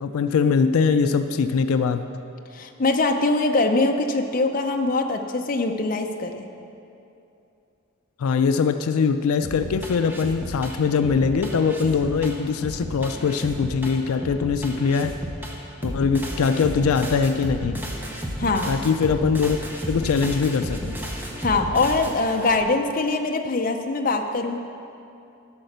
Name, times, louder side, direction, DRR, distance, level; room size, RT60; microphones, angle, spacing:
voice 1, 0.0-2.2 8.2-15.2 15.8-17.9 18.7-19.6 19.9-21.0, left 5 dB, 80° left, 9 dB, 0.4 m, -22 dB
voice 2, 2.5-6.5 18.4-18.8 21.4-24.6, left 3 dB, 40° left, 4 dB, 0.6 m, -23 dB
sound 1, 9.4-22.6, equal, 10° right, 0.9 m, -33 dB
11.5 x 5.7 x 6.6 m, 2.7 s
head